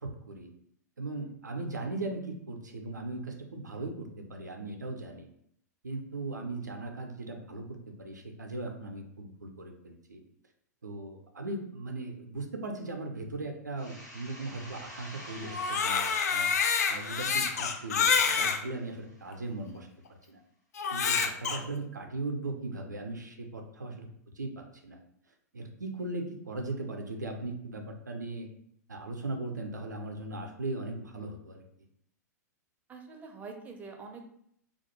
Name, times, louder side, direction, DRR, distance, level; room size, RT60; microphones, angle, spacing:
voice 1, 0.0-0.5 1.0-5.3 5.8-10.2 10.8-16.5 16.9-19.9 20.3-20.4 20.9-24.1 24.4-25.0 25.5-28.5 28.9-31.6, right 2 dB, 80° right, 3 dB, 0.4 m, -38 dB
sound 1, 13.8-19.3, equal, 85° left, 0.9 m, -47 dB
Crying sobbing, 15.5-18.6 19.3-19.4 20.8-21.6, left 6 dB, 65° left, 0.4 m, -27 dB
voice 2, 32.9-34.3, right 4 dB, 15° right, 3 dB, 0.4 m, -45 dB
2.4 x 2.1 x 2.9 m, 0.69 s
figure-of-eight pair, 100°, 9 cm